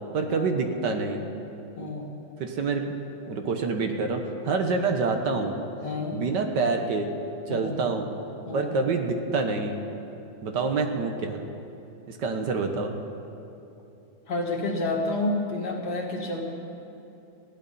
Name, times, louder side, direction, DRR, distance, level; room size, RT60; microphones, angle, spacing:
voice 1, 0.1-1.2 2.4-2.9 3.3-5.5 6.1-7.1 7.5-8.1 8.5-9.8 10.4-11.4 12.1-12.9, right 4 dB, 70° right, 5 dB, 1.7 m, -27 dB
voice 2, 1.8-2.1 5.8-6.2 7.5-7.8 8.4-8.7 14.3-16.4, left 2 dB, 60° left, 0 dB, 2.6 m, -29 dB
21.0 x 16.0 x 4.2 m, 2.9 s
omnidirectional pair, 2.0 m